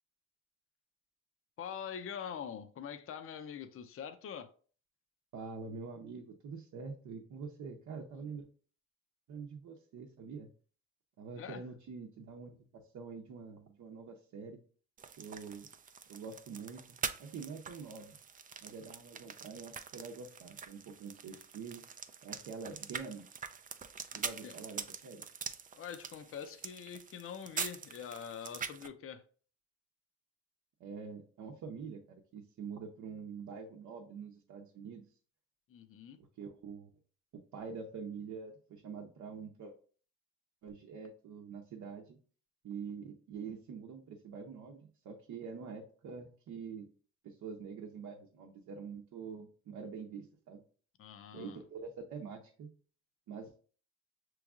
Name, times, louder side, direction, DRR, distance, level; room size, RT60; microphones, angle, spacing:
voice 1, 1.6-4.5 11.4-11.6 24.1-24.6 25.7-29.2 35.7-36.2 51.0-51.6, left 8 dB, 45° left, 0.5 m, -44 dB
voice 2, 5.3-8.5 9.3-10.5 11.2-14.6 15.2-15.7 16.1-18.2 18.6-21.8 22.2-23.3 24.1-25.2 30.8-32.0 32.3-35.1 36.2-36.9 37.5-39.7 40.6-42.2 42.6-46.9 47.2-50.6 51.3-52.7 53.3-53.5, right 5 dB, 70° right, 0.8 m, -45 dB
sound 1, 15.0-28.9, right 6 dB, 30° right, 0.4 m, -44 dB
6.0 x 3.1 x 2.4 m
cardioid pair, 90°, 30 cm